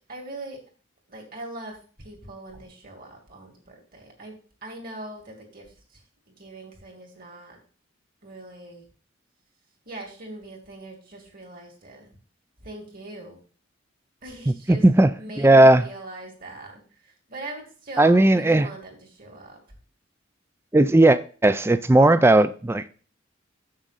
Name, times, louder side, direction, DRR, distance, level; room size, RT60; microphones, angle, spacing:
voice 1, 0.1-0.6 1.1-6.0 6.3-7.6 8.2-8.8 9.9-12.1 12.6-13.4 14.2-14.8 15.2-19.6, right 2 dB, 45° right, 2.5 m, -41 dB
voice 2, 14.7-15.1 15.4-15.8 18.0-18.7 20.7-22.9, right 2 dB, 10° right, 0.4 m, -16 dB
7.4 x 6.4 x 4.1 m
head